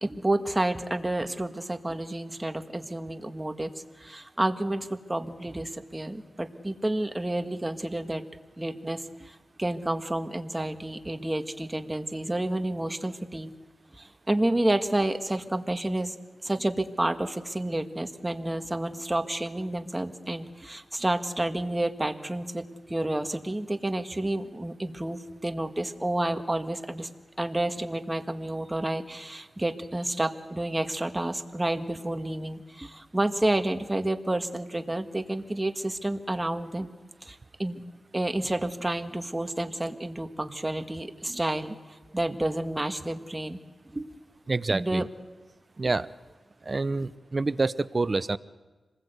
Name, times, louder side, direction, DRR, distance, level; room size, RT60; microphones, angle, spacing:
voice 1, 0.0-3.7 4.0-8.2 8.6-13.5 14.0-16.2 16.4-27.1 27.4-36.9 37.2-37.8 38.1-41.8 42.1-43.6 43.9-44.1 44.7-45.1, right 1 dB, 20° right, 7 dB, 1.6 m, -30 dB
voice 2, 44.5-45.1 45.8-46.1 46.6-48.4, right 3 dB, 40° right, 15 dB, 0.7 m, -27 dB
26.5 x 19.5 x 8.2 m, 1.3 s
cardioid pair, 65°, 0 cm